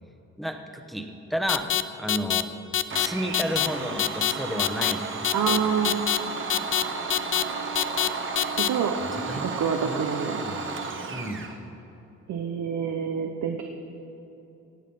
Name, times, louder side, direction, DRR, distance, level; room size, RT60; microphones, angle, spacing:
voice 1, 0.4-1.7 2.0-2.5 3.0-5.0 5.4-5.5 9.3-9.5 9.8-10.8 11.1-11.4, equal, ahead, 4 dB, 1.1 m, -32 dB
sound 1, 1.5-1.8 2.1-2.4 2.7-3.1 3.3-3.7 4.0-4.3 4.6-4.9 5.2-5.6 5.8-6.2 6.5-6.8 7.1-7.4 7.8-8.1 8.4-8.7, left 11 dB, 45° left, 0.5 m, -24 dB
Domestic sounds home sounds, 2.9-11.6, right 4 dB, 40° right, 1.3 m, -33 dB
sound 2, 5.1-11.1, equal, 85° left, 3.5 m, -45 dB
voice 2, 5.3-6.0 8.6-9.0 9.4-10.4 12.3-13.6, right 7 dB, 70° right, 3 dB, 0.9 m, -27 dB
17.5 x 7.4 x 5.6 m, 3.0 s
cardioid pair, 90°, 30 cm